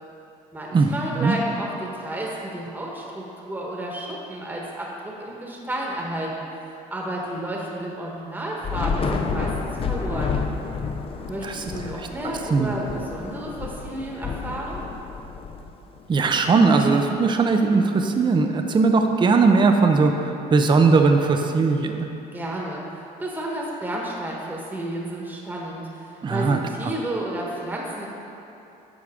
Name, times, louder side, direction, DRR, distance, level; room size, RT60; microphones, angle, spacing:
voice 1, 0.5-9.5 9.8-10.4 11.3-14.8 22.3-28.1, right 1 dB, 10° right, -3 dB, 1.2 m, -31 dB
Thunder / Rain, 8.6-16.2, left 5 dB, 35° left, 0.5 m, -30 dB
voice 2, 16.1-22.1 26.2-26.6 26.8-26.9, right 4 dB, 25° right, 5 dB, 0.6 m, -19 dB
10.0 x 6.1 x 3.6 m, 2.9 s
cardioid pair, 110°, 17 cm